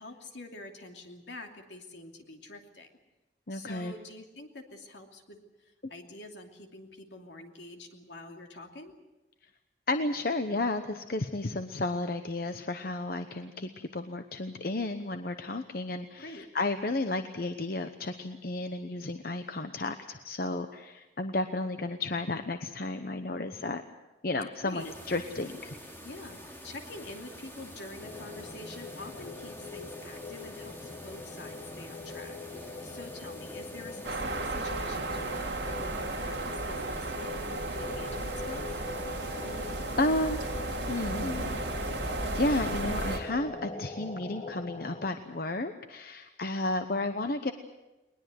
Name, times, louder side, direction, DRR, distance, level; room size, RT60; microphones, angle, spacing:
voice 1, 0.0-2.9 3.5-8.9 16.2-16.5 24.6-24.9 26.0-38.8, left 2 dB, 80° left, 3 dB, 2.8 m, -46 dB
voice 2, 3.5-3.9 9.9-23.8 24.2-25.7 39.4-40.4 40.9-41.6 42.3-47.5, left 2 dB, 55° left, 8 dB, 1.0 m, -32 dB
sound 1, 24.8-43.2, equal, 15° left, 2.9 m, -47 dB
sound 2, 28.0-45.1, left 3 dB, 35° left, 1.3 m, -42 dB
sound 3, 34.0-43.2, right 2 dB, 70° right, 2.5 m, -34 dB
20.5 x 20.5 x 7.9 m, 1.0 s
head